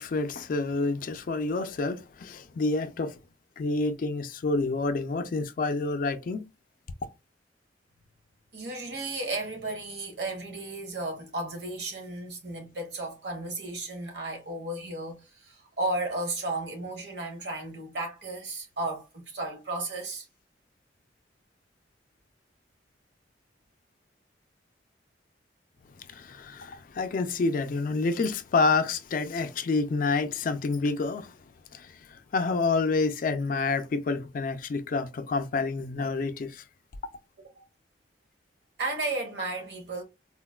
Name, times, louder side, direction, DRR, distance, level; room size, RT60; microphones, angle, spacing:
voice 1, 0.0-3.2 3.6-6.5 26.1-31.3 31.7-36.6, left 3 dB, 50° left, 0.3 m, -28 dB
voice 2, 8.5-20.3 37.4-37.6 38.8-40.0, right 2 dB, 65° right, 1.0 m, -34 dB
3.8 x 2.1 x 2.2 m
head